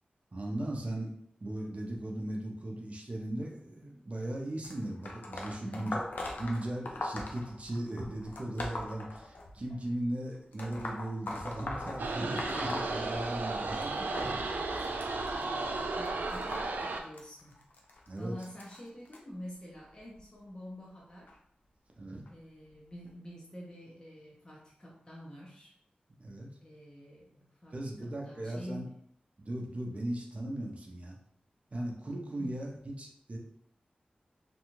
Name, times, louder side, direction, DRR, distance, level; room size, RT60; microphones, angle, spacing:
voice 1, 0.3-1.1 1.4-6.1 6.4-14.4 18.1-18.5 22.0-22.2 26.2-26.5 27.7-28.9 29.4-31.2 31.7-32.7 33.0-33.4, right 1 dB, 45° right, -1 dB, 0.6 m, -37 dB
sound 1, 4.6-9.8 10.5-13.5 13.8-19.2 20.0-20.2 21.3-21.4 22.3-22.4 23.1-23.2, left 2 dB, 70° left, 0.4 m, -41 dB
voice 2, 5.6-6.0 14.2-15.0 15.3-17.6 18.2-21.4 22.3-25.7 26.6-28.9 32.4-32.6, equal, 25° left, -4 dB, 0.6 m, -47 dB
sound 2, 12.0-17.0, right 3 dB, 85° right, 0.3 m, -34 dB
2.6 x 2.3 x 3.0 m, 0.67 s
wide cardioid pair, 90°, 3 cm